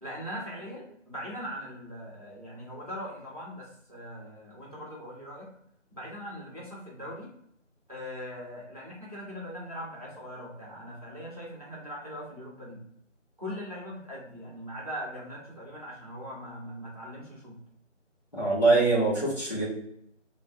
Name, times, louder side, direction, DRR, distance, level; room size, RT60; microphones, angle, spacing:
voice 1, 0.0-5.5 5.9-7.3 7.9-12.8 13.4-17.6, equal, 30° right, -6 dB, 0.9 m, -40 dB
voice 2, 18.3-19.7, right 3 dB, 35° left, -7 dB, 1.2 m, -23 dB
3.1 x 2.6 x 2.3 m, 0.71 s
figure-of-eight pair, 165°, 37 cm